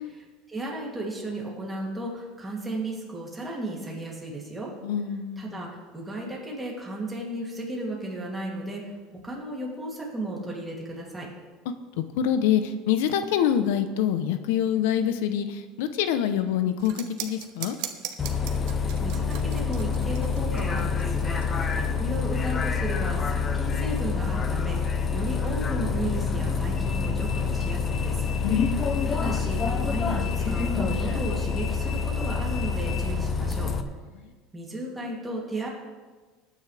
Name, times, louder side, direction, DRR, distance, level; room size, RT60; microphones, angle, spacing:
voice 1, 0.1-4.7 5.4-8.8 9.2-11.3 19.0-28.2 29.1-33.7 34.5-35.7, right 1 dB, 10° right, -3 dB, 2.9 m, -34 dB
voice 2, 4.8-5.6 12.2-17.8 28.4-29.0, left 9 dB, 80° left, 10 dB, 0.9 m, -25 dB
sound 1, 16.8-21.9, right 12 dB, 65° right, 1.2 m, -38 dB
Bus, 18.2-33.8, left 5 dB, 25° left, 0.8 m, -27 dB
20.0 x 9.5 x 3.5 m, 1.3 s
cardioid pair, 150°, 0 cm